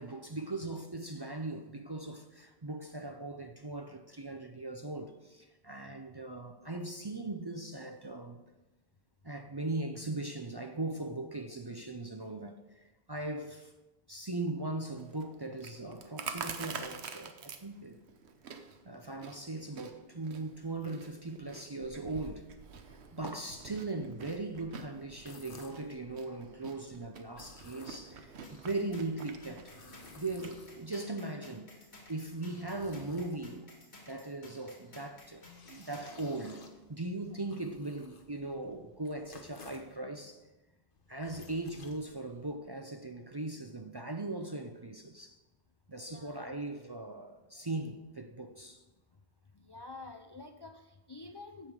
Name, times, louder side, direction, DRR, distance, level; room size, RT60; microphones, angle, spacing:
voice 1, 0.0-8.4 9.2-13.7 14.1-18.0 18.8-22.5 23.1-29.7 30.2-31.7 32.1-33.8 34.1-36.6 36.9-40.4 41.1-45.4 45.9-48.8, right 2 dB, 30° right, 0.5 m, -39 dB
Chewing mastication, 15.0-30.6, right 6 dB, 85° right, 1.1 m, -47 dB
sound 1, 25.1-25.9 27.2-28.3 29.3-31.1 31.8-33.7 35.1-40.0 40.9-42.6, left 3 dB, 55° left, 1.3 m, -55 dB
sound 2, 28.4-36.3, left 2 dB, 80° left, 2.4 m, -55 dB
voice 2, 46.1-46.6 49.5-51.7, left 3 dB, 35° left, 0.4 m, -48 dB
15.5 x 5.5 x 4.8 m
omnidirectional pair, 1.1 m